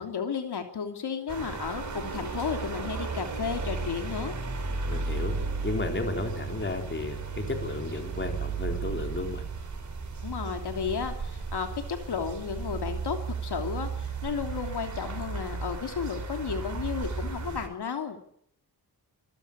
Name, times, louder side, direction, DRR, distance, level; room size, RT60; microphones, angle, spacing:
voice 1, 0.0-4.4 10.2-13.2 13.4-18.2, left 6 dB, 75° left, 5 dB, 3.1 m, -33 dB
sound 1, 1.3-17.7, right 4 dB, 45° right, 4.5 m, -34 dB
voice 2, 4.9-5.3 5.6-9.4, left 3 dB, 30° left, 4 dB, 3.9 m, -33 dB
25.5 x 15.5 x 8.7 m, 0.68 s
wide cardioid pair, 170°, 40 cm